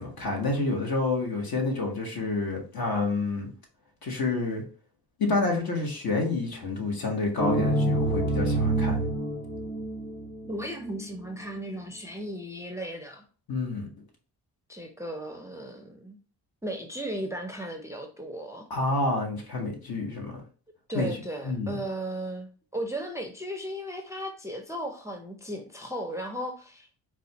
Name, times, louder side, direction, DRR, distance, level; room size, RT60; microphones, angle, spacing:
voice 1, 0.0-3.5 4.0-4.6 5.2-9.0 13.5-13.9 18.7-20.4 20.9-21.1 21.4-21.7, left 3 dB, 60° left, 1 dB, 1.2 m, -28 dB
sound 1, 7.4-11.0, right 2 dB, 25° left, 1.1 m, -27 dB
voice 2, 10.4-13.2 14.7-16.2 16.6-18.7 20.9-27.0, right 1 dB, 5° right, 4 dB, 0.5 m, -36 dB
4.2 x 2.3 x 2.8 m, 0.39 s
cardioid pair, 75°, 41 cm